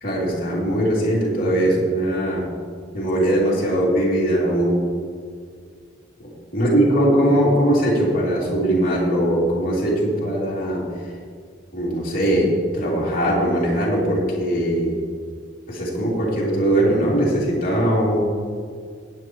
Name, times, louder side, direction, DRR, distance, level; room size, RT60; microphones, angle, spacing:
voice 1, 0.0-2.4 2.9-4.9 6.2-10.8 11.7-15.0 15.7-18.2, right 1 dB, 40° left, -5 dB, 2.8 m, -20 dB
17.0 x 8.6 x 3.1 m, 2.1 s
head